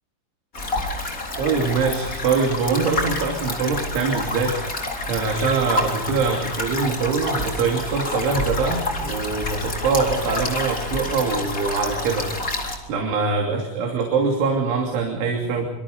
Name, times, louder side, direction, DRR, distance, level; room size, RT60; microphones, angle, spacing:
sound 1, 0.5-12.8, left 2 dB, 20° left, 3.5 m, -28 dB
voice 1, 1.4-12.5 12.9-15.7, right 4 dB, 85° right, 1 dB, 5.4 m, -23 dB
26.0 x 25.5 x 5.2 m, 0.88 s
omnidirectional pair, 5.3 m